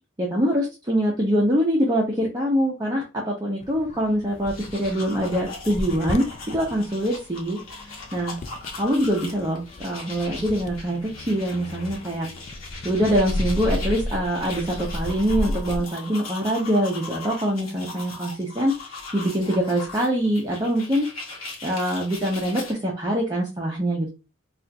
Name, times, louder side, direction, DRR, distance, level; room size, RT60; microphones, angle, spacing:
voice 1, 0.2-6.3 6.5-7.6 8.1-8.4 8.8-12.3 12.8-21.1 21.6-24.1, equal, 20° right, -3 dB, 0.6 m, -24 dB
sound 1, 3.6-15.8, left 1 dB, 35° left, 0.3 m, -34 dB
sound 2, 4.3-22.7, left 3 dB, 70° left, 1.1 m, -40 dB
4.2 x 2.4 x 2.2 m, 0.28 s
head